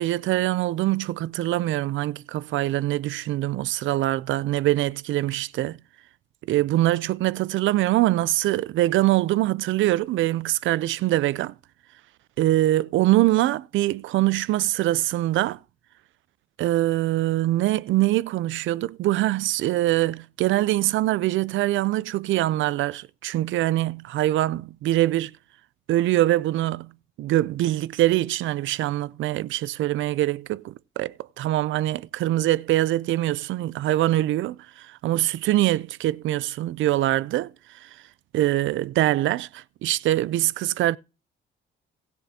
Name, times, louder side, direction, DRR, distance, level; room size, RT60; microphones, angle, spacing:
voice 1, 0.0-5.8 6.5-11.5 12.4-15.6 16.6-25.3 25.9-26.9 27.2-37.5 37.8-37.9 38.3-41.0, right 15 dB, 75° right, 0.5 m, -23 dB
19.0 x 7.0 x 2.8 m
cardioid pair, 90°, 20 cm